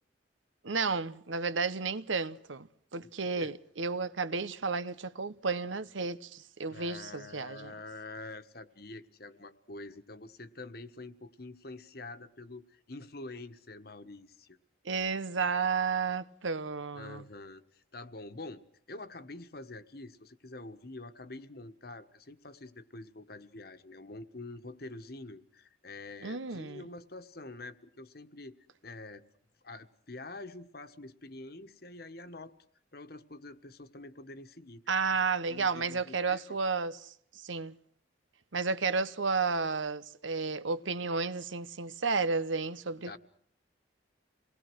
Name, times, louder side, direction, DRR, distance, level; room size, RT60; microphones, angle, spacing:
voice 1, 0.6-7.7 14.8-17.2 26.2-26.8 34.9-37.7 38.5-43.2, right 4 dB, 85° right, 1.1 m, -32 dB
voice 2, 3.0-3.5 6.7-14.6 16.9-18.6 18.9-28.6 28.8-29.2 29.6-32.5 32.9-34.8 35.5-36.6 43.1-43.2, left 2 dB, 55° left, 1.4 m, -46 dB
28.5 x 20.0 x 6.3 m
head